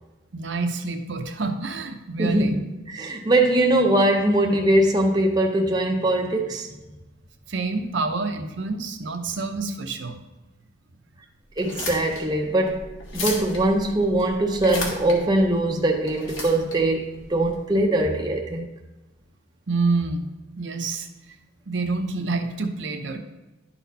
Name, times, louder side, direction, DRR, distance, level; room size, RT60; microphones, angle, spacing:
voice 1, 0.3-2.6 7.5-10.2 19.7-20.2 20.6-21.1 21.7-23.2, right 3 dB, 60° right, 0.7 m, -27 dB
voice 2, 2.2-2.6 2.9-6.7 11.6-18.7, right 1 dB, 20° right, 0.6 m, -22 dB
sound 1, 11.5-18.0, left 2 dB, 70° left, 1.6 m, -35 dB
11.0 x 4.2 x 4.0 m
head